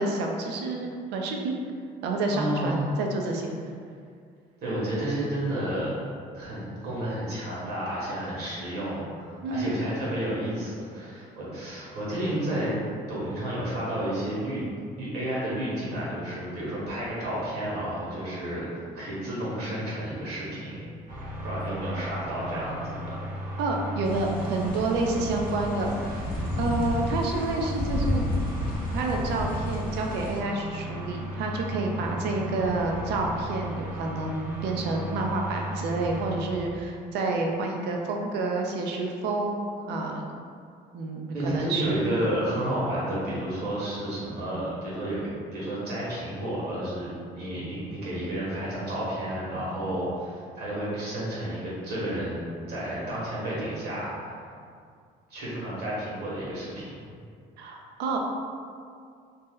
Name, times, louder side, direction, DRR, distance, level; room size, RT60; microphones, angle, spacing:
voice 1, 0.0-1.6 2.0-3.6 9.4-9.7 23.6-26.3 26.6-28.3 28.9-40.3 40.9-42.0 57.6-58.2, right 2 dB, 80° right, 1 dB, 0.5 m, -29 dB
voice 2, 2.3-2.9 4.6-5.9 6.3-12.7 13.1-14.6 14.9-20.8 21.4-23.2 41.3-54.3 55.3-57.0, right 1 dB, 65° right, -7 dB, 1.3 m, -31 dB
sound 1, 21.1-36.7, right 1 dB, 50° right, 0.9 m, -35 dB
sound 2, 24.0-30.4, left 1 dB, 55° left, 0.5 m, -32 dB
2.7 x 2.1 x 3.6 m, 2.2 s
cardioid pair, 110°, 17 cm